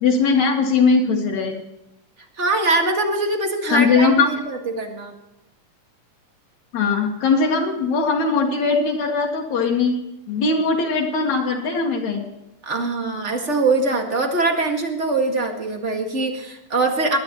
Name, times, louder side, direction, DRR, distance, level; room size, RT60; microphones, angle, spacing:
voice 1, 0.0-1.6 3.7-4.3 6.7-10.0 10.3-12.3, left 4 dB, 70° left, -2 dB, 2.8 m, -20 dB
voice 2, 2.4-5.1 12.6-17.2, right 3 dB, 25° right, 3 dB, 1.8 m, -22 dB
21.5 x 12.5 x 3.1 m, 0.94 s
omnidirectional pair, 3.4 m